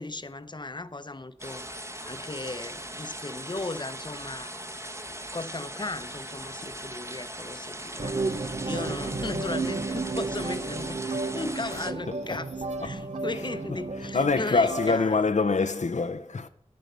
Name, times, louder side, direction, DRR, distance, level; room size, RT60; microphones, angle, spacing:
voice 1, 0.0-1.6 2.1-4.5 5.1-15.2, left 2 dB, 40° left, 0.7 m, -36 dB
sound 1, 1.4-11.9, right 1 dB, 25° right, 1.1 m, -39 dB
sound 2, 8.0-15.0, right 3 dB, 70° right, 0.8 m, -33 dB
voice 2, 12.1-12.5 12.8-16.5, left 4 dB, 85° left, 0.6 m, -27 dB
9.2 x 9.0 x 6.6 m
wide cardioid pair, 45°, 12 cm